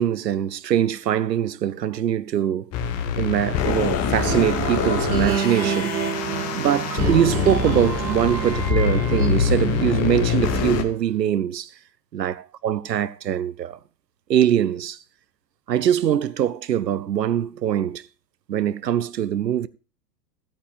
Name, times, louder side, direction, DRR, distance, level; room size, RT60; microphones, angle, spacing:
voice 1, 0.0-2.7 3.2-5.9 6.5-11.7 12.1-13.8 14.3-15.0 15.7-18.0 18.5-19.7, right 10 dB, 80° right, 0.7 m, -23 dB
sound 1, 2.7-10.8, left 7 dB, 30° left, 1.3 m, -24 dB
sound 2, 4.2-10.8, right 6 dB, 55° right, 2.4 m, -29 dB
16.0 x 8.9 x 2.4 m
figure-of-eight pair, 95°, 49 cm